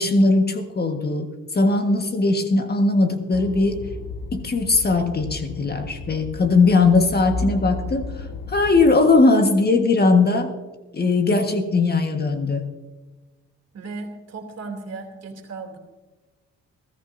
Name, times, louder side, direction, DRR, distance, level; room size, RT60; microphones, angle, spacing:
voice 1, 0.0-3.9 4.3-10.5 10.9-12.7, left 3 dB, 30° left, 6 dB, 1.5 m, -19 dB
sound 1, 3.3-8.9, left 3 dB, 75° left, 1.6 m, -33 dB
voice 2, 13.7-15.8, right 3 dB, 55° right, 4 dB, 2.8 m, -35 dB
21.0 x 13.5 x 2.7 m, 1.2 s
cardioid pair, 90°, 30 cm